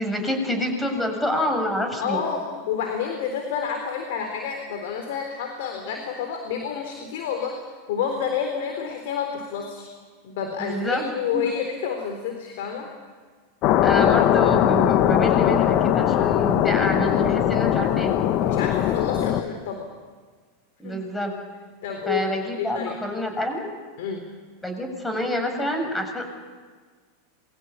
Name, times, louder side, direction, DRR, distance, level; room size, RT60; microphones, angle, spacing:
voice 1, 0.0-2.2 10.6-11.5 13.8-18.3 20.8-21.3 22.1-23.6 24.6-26.2, equal, 10° left, 4 dB, 7.2 m, -27 dB
voice 2, 2.0-7.6 7.9-9.9 10.2-12.9 18.4-19.9 20.8-21.0 21.8-23.0 24.0-24.3, left 7 dB, 65° left, 5 dB, 3.8 m, -29 dB
sound 1, 13.6-19.4, left 11 dB, 45° left, 1.6 m, -20 dB
27.5 x 22.5 x 8.7 m, 1.5 s
hypercardioid pair, 95°, 0 cm